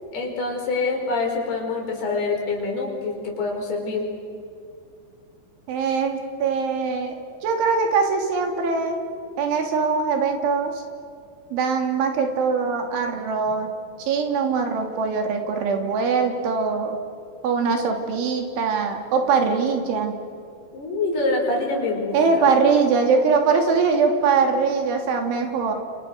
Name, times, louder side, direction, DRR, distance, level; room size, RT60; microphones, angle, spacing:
voice 1, 0.1-4.1 20.7-22.5, left 3 dB, 60° left, 0 dB, 6.9 m, -25 dB
voice 2, 5.7-7.2 7.4-9.0 9.4-10.7 11.5-13.7 14.0-17.0 17.4-20.2 22.1-25.7, right 5 dB, 85° right, 4 dB, 5.2 m, -22 dB
29.5 x 29.0 x 6.6 m, 2.5 s
omnidirectional pair, 5.3 m